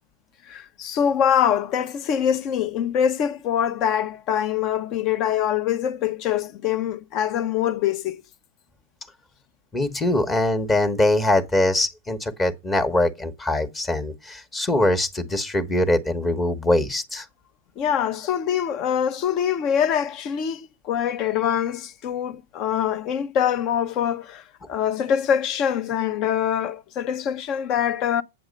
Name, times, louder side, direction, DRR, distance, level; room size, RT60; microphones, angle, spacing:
voice 1, 0.5-8.2 17.8-28.2, left 9 dB, 40° left, 0.9 m, -24 dB
voice 2, 9.7-17.2, left 1 dB, 15° left, 1.2 m, -22 dB
8.2 x 7.1 x 5.2 m
hypercardioid pair, 130°, 0 cm